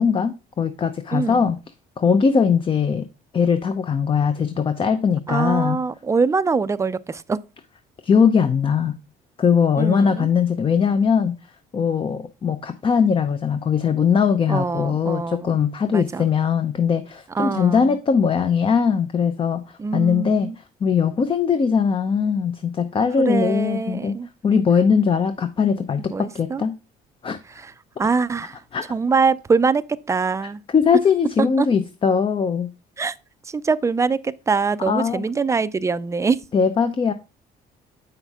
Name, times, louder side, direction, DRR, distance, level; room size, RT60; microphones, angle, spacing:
voice 1, 0.0-1.6 2.0-3.0 3.3-5.8 8.0-9.0 9.4-11.3 11.7-20.5 20.8-24.1 24.4-26.7 27.2-27.4 28.7-28.8 30.7-32.7 34.9-35.2 36.5-37.1, left 6 dB, 30° left, 0.6 m, -20 dB
voice 2, 1.1-1.5 5.3-7.4 9.8-10.3 14.5-15.5 15.9-16.3 17.3-18.0 19.8-20.6 23.2-24.3 26.1-26.6 27.5-27.7 28.0-28.6 28.9-30.6 31.4-31.7 33.0-33.2 33.4-36.4, right 4 dB, 15° right, 0.4 m, -23 dB
8.0 x 5.8 x 3.5 m
cardioid pair, 110°, 17 cm